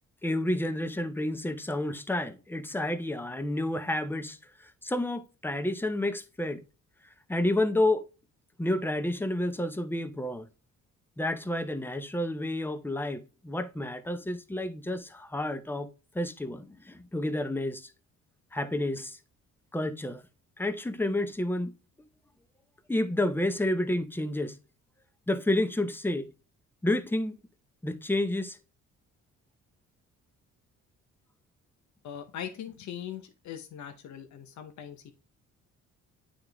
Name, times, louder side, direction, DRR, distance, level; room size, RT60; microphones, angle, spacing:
voice 1, 0.2-6.6 7.3-8.0 8.6-10.5 11.2-15.9 16.1-17.9 18.5-19.2 19.7-20.2 20.6-21.8 22.9-24.6 25.3-26.3 26.8-27.4 27.8-28.6, left 1 dB, 5° left, 0.7 m, -30 dB
voice 2, 32.0-35.1, left 9 dB, 70° left, 0.9 m, -41 dB
8.8 x 3.7 x 3.4 m
cardioid pair, 90°, 30 cm